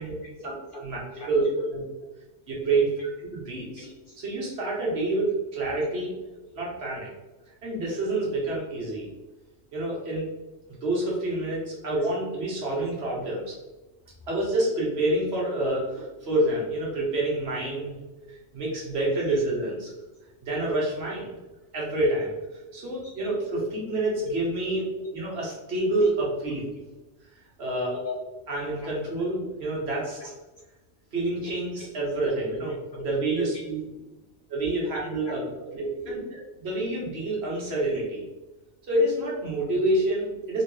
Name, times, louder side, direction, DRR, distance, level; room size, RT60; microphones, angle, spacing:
voice 1, 0.0-0.8 1.1-1.3 1.6-1.7 3.8-4.2 4.4-4.5 5.8-5.9 6.5-6.6 7.4-7.5 11.9-12.1 18.2-18.4 18.9-19.4 20.1-20.2 22.0-22.1 23.0-23.9 24.9-25.1 26.0-26.1 27.9-28.2 28.8-28.9 31.4-31.5 32.2-33.1 33.4-33.6 33.9-34.0 35.2-35.7 36.0-36.1 37.9-38.0, left 1 dB, 60° left, -1 dB, 0.6 m, -38 dB
voice 2, 2.5-2.9 3.3-3.8 4.2-6.1 6.5-7.1 7.6-9.1 9.7-10.3 10.8-13.5 14.3-17.9 18.5-19.9 20.4-21.3 21.7-22.3 22.7-23.4 23.9-24.8 25.1-26.1 26.4-26.6 27.6-27.9 28.5-30.0 31.1-32.7 33.0-33.8 34.5-35.4 35.7-35.9 36.6-38.2 38.9-40.6, right 2 dB, 55° right, -4 dB, 1.3 m, -27 dB
3.3 x 3.0 x 3.1 m, 1.1 s
omnidirectional pair, 1.3 m